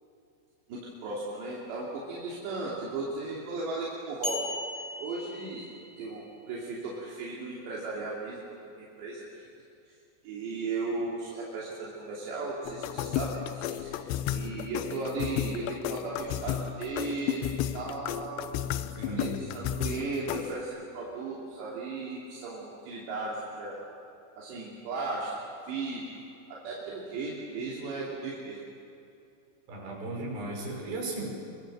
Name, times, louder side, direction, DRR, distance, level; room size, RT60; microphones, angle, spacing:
voice 1, 0.7-4.4 5.0-5.7 6.0-8.4 8.8-9.5 10.3-14.0 14.3-18.8 19.1-23.9 24.4-25.3 25.7-26.2 26.5-28.6, right 3 dB, 75° right, -5 dB, 5.2 m, -36 dB
sound 1, 4.2-6.1, left 1 dB, 10° left, 3.5 m, -37 dB
sound 2, 12.7-20.6, left 11 dB, 80° left, 2.9 m, -33 dB
voice 2, 19.0-19.5 29.7-31.3, right 2 dB, 60° right, -1 dB, 7.4 m, -36 dB
26.0 x 24.0 x 7.7 m, 2.7 s
omnidirectional pair, 5.0 m